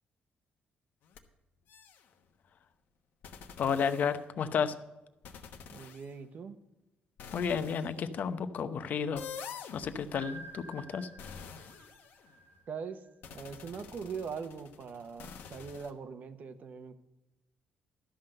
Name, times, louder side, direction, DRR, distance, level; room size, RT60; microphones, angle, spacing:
sound 1, 1.0-1.2 1.7-2.1 3.2-4.5 5.2-6.1 7.2-7.9 9.2-12.5 13.2-15.9, left 6 dB, 80° left, 1.1 m, -48 dB
voice 1, 3.6-4.7 7.3-9.2 9.7-11.1, left 6 dB, 55° left, 10 dB, 0.8 m, -32 dB
voice 2, 5.7-6.6 12.7-13.0 13.3-17.0, right 6 dB, 55° right, 9 dB, 1.0 m, -41 dB
sound 2, 10.1-13.1, right 2 dB, 90° right, 3.2 m, -50 dB
12.5 x 5.8 x 7.7 m, 1.0 s
cardioid pair, 120°, 3 cm